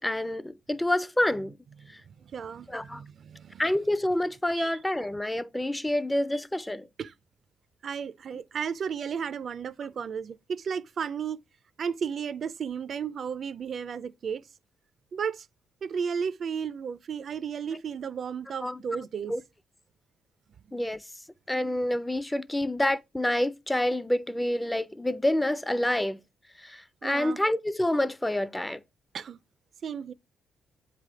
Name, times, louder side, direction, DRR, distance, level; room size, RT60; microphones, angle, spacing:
voice 1, 0.0-1.5 2.7-3.0 3.6-6.9 18.6-18.8 19.3-19.4 20.7-21.0 21.5-26.2 26.6-28.8, left 1 dB, 10° left, 0.4 m, -28 dB
voice 2, 1.8-3.6 4.6-4.8 7.0-7.1 7.8-11.4 11.8-14.4 15.1-15.5 15.8-19.3 27.0-27.4 29.1-29.4 29.8-30.1, right 7 dB, 55° right, 0.4 m, -34 dB
8.0 x 3.3 x 4.9 m
cardioid pair, 90°, 0 cm